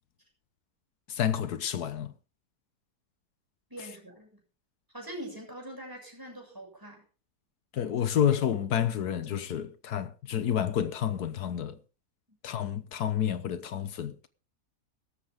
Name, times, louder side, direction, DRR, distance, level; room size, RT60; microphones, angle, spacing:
voice 1, 1.1-2.1 7.7-11.8 12.4-14.1, left 9 dB, 85° left, 1.6 m, -29 dB
voice 2, 3.7-4.3 4.9-7.0, right 1 dB, 15° right, 7.0 m, -43 dB
17.5 x 13.5 x 3.6 m
omnidirectional pair, 1.6 m